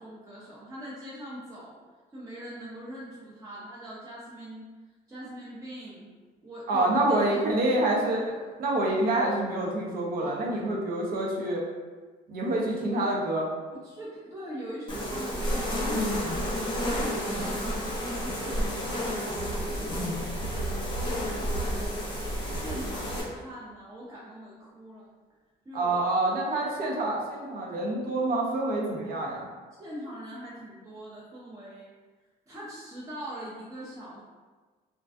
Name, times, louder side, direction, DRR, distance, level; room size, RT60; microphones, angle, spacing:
voice 1, 0.0-1.8 2.1-4.7 5.1-6.1 6.4-7.4 7.7-7.8 10.2-10.6 12.9-13.1 13.8-16.4 17.0-17.6 17.9-22.2 22.5-25.1 25.7-26.0 29.8-31.9 32.5-34.2, equal, 20° right, -7 dB, 0.5 m, -42 dB
voice 2, 6.7-11.6 12.3-13.5 25.7-29.5, right 2 dB, 60° right, -2 dB, 0.6 m, -27 dB
sound 1, 14.9-23.2, equal, 30° left, 0.7 m, -30 dB
2.5 x 2.2 x 2.2 m, 1.4 s
cardioid pair, 110°, 17 cm